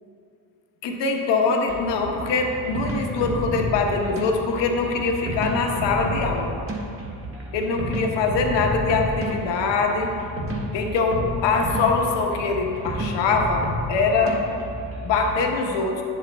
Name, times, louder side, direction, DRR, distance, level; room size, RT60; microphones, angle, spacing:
voice 1, 0.8-6.6 7.5-10.1 10.7-14.4 15.0-16.0, left 4 dB, 60° left, 2 dB, 1.0 m, -23 dB
sound 1, 1.7-15.4, equal, 30° right, 1.7 m, -31 dB
10.0 x 7.4 x 2.2 m, 2.6 s
hypercardioid pair, 55°, 47 cm